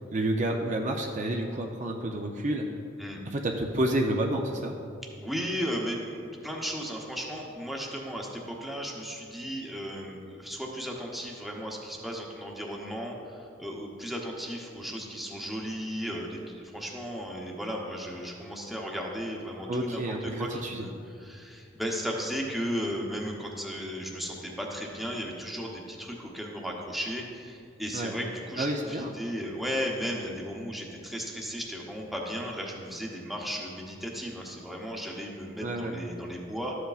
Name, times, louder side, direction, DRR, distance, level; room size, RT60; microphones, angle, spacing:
voice 1, 0.1-2.7 3.3-4.7 19.7-20.8 27.9-28.1 28.6-29.1 35.6-35.9, right 1 dB, 40° right, 2 dB, 0.5 m, -29 dB
voice 2, 5.2-36.8, equal, ahead, -1 dB, 0.8 m, -35 dB
13.0 x 7.9 x 2.4 m, 2.5 s
head